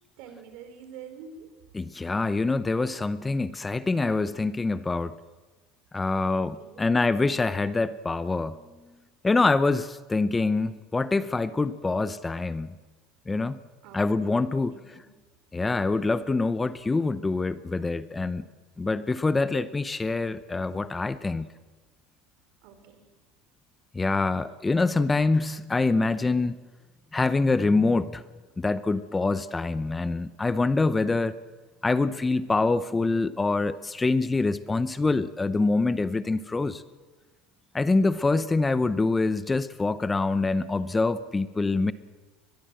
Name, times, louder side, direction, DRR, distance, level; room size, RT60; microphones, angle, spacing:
voice 1, 0.2-1.5 6.3-6.9 13.8-14.2 14.5-15.1 22.6-23.0, right 7 dB, 70° right, 7 dB, 4.6 m, -46 dB
voice 2, 1.7-5.1 5.9-8.6 9.2-12.7 13.3-13.6 13.9-14.8 15.5-18.4 18.8-21.5 23.9-26.6 27.1-28.2 28.6-31.4 31.8-36.8 37.7-41.9, left 3 dB, 15° left, 14 dB, 0.7 m, -25 dB
23.0 x 21.0 x 7.7 m, 1.3 s
supercardioid pair, 135°, 0 cm